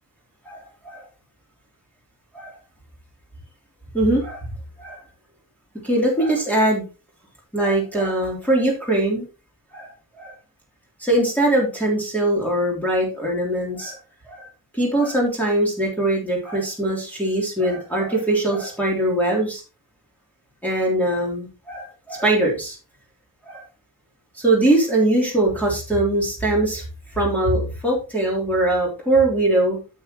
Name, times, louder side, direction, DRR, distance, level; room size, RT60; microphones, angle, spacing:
voice 1, 0.4-1.0 2.3-2.5 3.9-4.4 4.8-5.0 5.8-6.8 7.5-9.3 9.7-9.9 10.2-10.3 11.0-14.0 14.3-14.5 14.8-19.6 20.6-22.7 23.4-23.6 24.3-26.8 27.1-29.8, right 1 dB, 5° left, -3 dB, 3.3 m, -21 dB
9.2 x 7.4 x 3.0 m, 0.32 s
wide cardioid pair, 160°, 35 cm